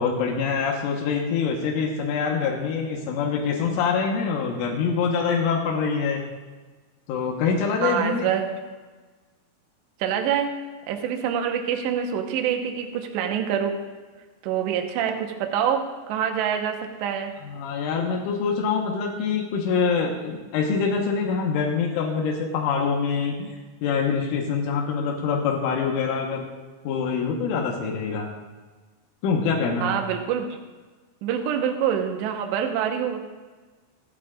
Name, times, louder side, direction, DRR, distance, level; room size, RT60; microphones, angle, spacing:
voice 1, 0.0-6.2 7.1-8.3 17.4-23.5 23.8-26.5 26.9-28.3 29.2-30.0, left 5 dB, 85° left, -1 dB, 3.7 m, -25 dB
voice 2, 7.8-8.5 10.0-10.6 10.9-13.8 14.4-17.3 29.8-30.5 31.2-33.2, right 8 dB, 75° right, 4 dB, 3.1 m, -26 dB
26.5 x 9.1 x 2.5 m, 1.3 s
omnidirectional pair, 5.5 m